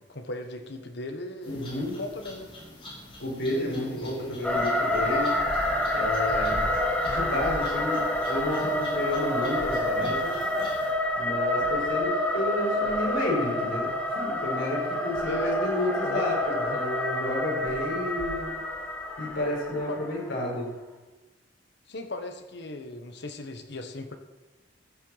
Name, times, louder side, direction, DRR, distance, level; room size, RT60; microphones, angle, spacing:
voice 1, 0.0-2.5 3.5-4.5 15.2-16.8 19.9-20.0 21.9-24.2, left 2 dB, 65° left, 7 dB, 1.3 m, -38 dB
sound 1, 1.4-10.9, left 1 dB, 30° left, 3.1 m, -46 dB
voice 2, 1.5-2.0 3.2-5.3 5.9-6.6 7.1-8.0 8.3-10.4 11.2-18.5 19.2-20.7, left 1 dB, 80° left, -4 dB, 5.2 m, -31 dB
sound 2, 4.4-20.4, left 1 dB, 5° left, 1.7 m, -28 dB
15.0 x 7.8 x 5.7 m, 1.1 s
head